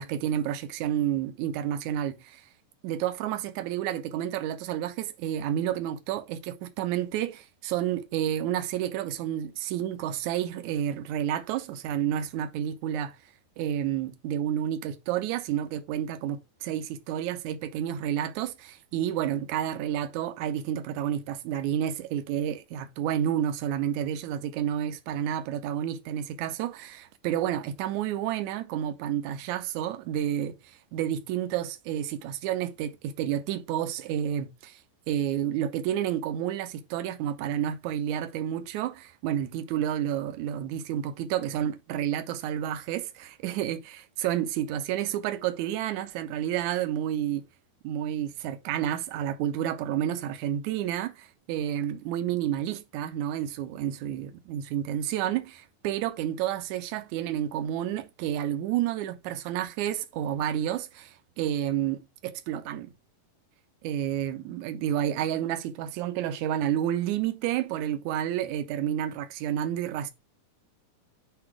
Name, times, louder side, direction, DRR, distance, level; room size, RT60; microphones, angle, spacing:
voice 1, 0.0-2.4 2.8-13.2 13.6-34.8 35.1-47.4 47.8-62.9 63.8-70.1, right 10 dB, 75° right, 1.9 m, -30 dB
8.0 x 3.0 x 4.8 m
omnidirectional pair, 3.8 m